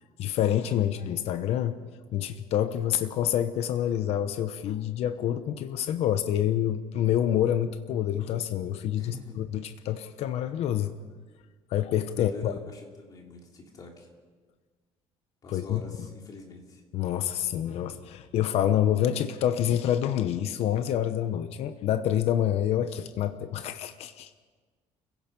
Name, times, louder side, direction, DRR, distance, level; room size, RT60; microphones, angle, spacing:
voice 1, 0.2-1.8 2.1-10.9 11.7-12.5 15.5-15.8 16.9-24.3, left 10 dB, 60° left, 10 dB, 0.9 m, -27 dB
voice 2, 9.0-9.4 12.1-14.1 15.4-16.8, left 3 dB, 35° left, 0 dB, 3.3 m, -44 dB
29.5 x 16.5 x 5.4 m, 1.5 s
cardioid pair, 175°, 12 cm